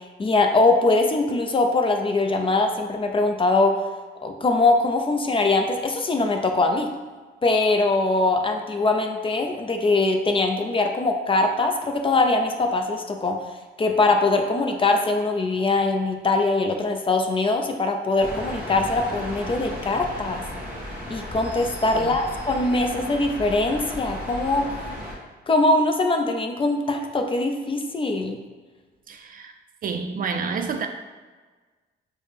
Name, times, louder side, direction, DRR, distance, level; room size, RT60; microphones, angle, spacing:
voice 1, 0.2-3.8 4.2-6.9 7.4-13.4 13.8-20.4 21.1-24.7 25.5-28.4, left 2 dB, 25° left, 0.4 m, -22 dB
sound 1, 18.2-25.2, equal, 10° right, 1.1 m, -35 dB
voice 2, 29.1-29.6 29.8-30.9, right 5 dB, 45° right, 0.4 m, -29 dB
4.7 x 2.1 x 3.4 m
cardioid pair, 90°, 20 cm